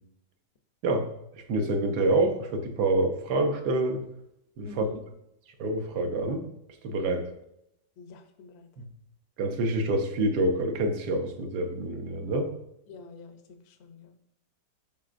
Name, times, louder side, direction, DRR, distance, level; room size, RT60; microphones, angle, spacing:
voice 1, 1.3-4.0 4.6-4.8 5.6-6.5 6.8-7.3 8.8-8.9 9.4-12.5, right 2 dB, 70° right, 5 dB, 1.4 m, -27 dB
voice 2, 4.6-5.0 8.0-8.7 12.9-14.1, left 3 dB, 60° left, 7 dB, 0.6 m, -47 dB
11.5 x 4.3 x 2.5 m, 0.80 s
omnidirectional pair, 1.9 m